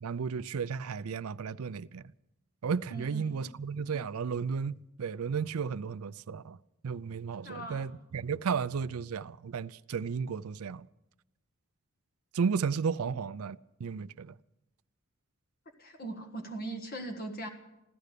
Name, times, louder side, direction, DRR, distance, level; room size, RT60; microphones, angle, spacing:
voice 1, 0.0-2.1 2.6-10.9 12.3-14.3, right 6 dB, 90° right, 0.5 m, -34 dB
voice 2, 2.9-3.5 7.4-7.9 15.8-17.5, right 2 dB, 45° left, 1.4 m, -40 dB
15.5 x 13.5 x 6.7 m
head